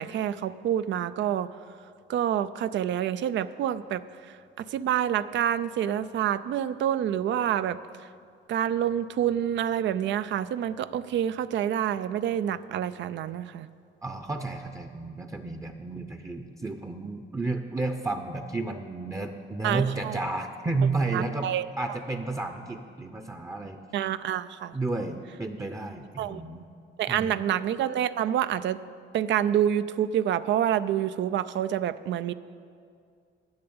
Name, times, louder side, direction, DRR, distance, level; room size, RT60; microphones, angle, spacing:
voice 1, 0.0-1.5 2.1-7.8 8.5-13.7 19.6-20.2 21.1-21.7 23.9-24.7 26.2-26.4 27.0-28.8 29.1-32.3, right 10 dB, 70° right, 15 dB, 0.4 m, -27 dB
voice 2, 14.0-23.8 24.7-26.7 27.1-27.4, right 3 dB, 15° right, 5 dB, 0.7 m, -32 dB
10.5 x 6.8 x 8.7 m, 2.3 s
cardioid pair, 90°, 20 cm